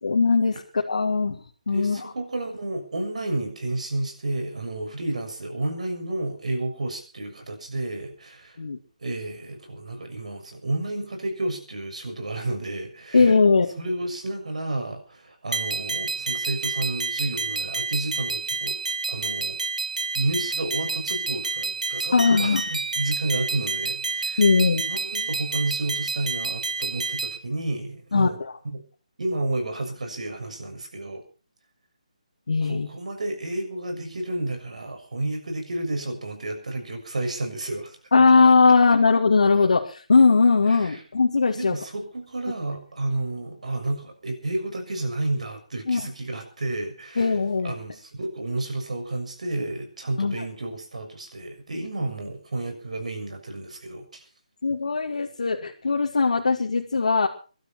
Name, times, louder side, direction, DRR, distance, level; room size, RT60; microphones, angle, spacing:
voice 1, 0.0-2.0 8.6-8.8 13.1-13.7 22.1-22.6 24.4-24.8 28.1-28.6 32.5-32.9 38.1-41.8 45.9-46.0 47.2-47.7 50.2-50.4 54.6-57.3, left 4 dB, 65° left, 0 dB, 2.3 m, -20 dB
voice 2, 1.7-8.6 9.0-13.3 13.8-18.8 19.1-19.6 20.1-24.4 24.9-28.4 28.6-28.8 29.2-31.2 32.6-38.0 40.7-41.0 41.5-47.3 47.6-54.2, right 2 dB, 65° right, 6 dB, 6.7 m, -31 dB
sound 1, 15.5-27.4, right 4 dB, 80° right, 1.8 m, -29 dB
22.5 x 12.5 x 4.5 m, 0.38 s
figure-of-eight pair, 155°, 4 cm